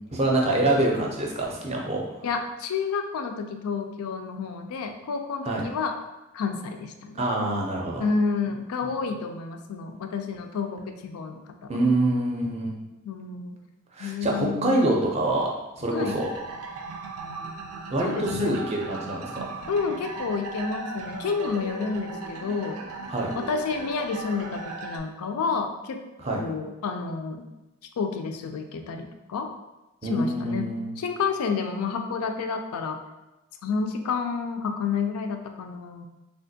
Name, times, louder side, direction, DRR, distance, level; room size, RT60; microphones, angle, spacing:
voice 1, 0.1-2.0 5.4-5.6 7.1-8.0 11.7-12.8 13.9-16.3 17.9-19.7 23.1-23.3 26.2-26.4 30.0-30.9, right 1 dB, 30° right, -1 dB, 0.5 m, -25 dB
voice 2, 2.2-6.0 6.3-7.2 8.0-11.7 13.1-13.6 14.0-14.8 15.9-16.2 18.0-18.6 19.7-22.8 23.3-26.0 26.4-27.4 28.0-29.5 30.1-33.0 33.6-36.1, left 5 dB, 85° left, 6 dB, 0.4 m, -30 dB
sound 1, 16.0-25.0, right 3 dB, 85° right, 0.4 m, -37 dB
3.4 x 2.4 x 2.6 m, 1.0 s
head